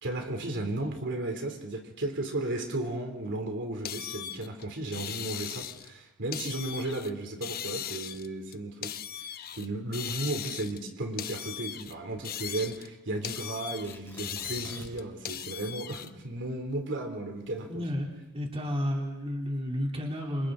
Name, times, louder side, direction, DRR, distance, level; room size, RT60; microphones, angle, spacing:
voice 1, 0.0-8.9 9.2-17.7, right 2 dB, 55° right, 3 dB, 3.0 m, -34 dB
sound 1, 3.9-5.9 6.3-7.1 7.4-9.7 9.9-10.9 11.2-12.9 13.2-16.1, left 10 dB, 45° left, 0.8 m, -38 dB
Tearing, 13.8-15.2 15.5-15.6 16.1-18.5 19.2-19.6, left 1 dB, 10° left, 5.4 m, -49 dB
voice 2, 17.7-20.5, equal, 25° right, 0 dB, 3.1 m, -32 dB
27.5 x 27.0 x 3.8 m, 0.98 s
head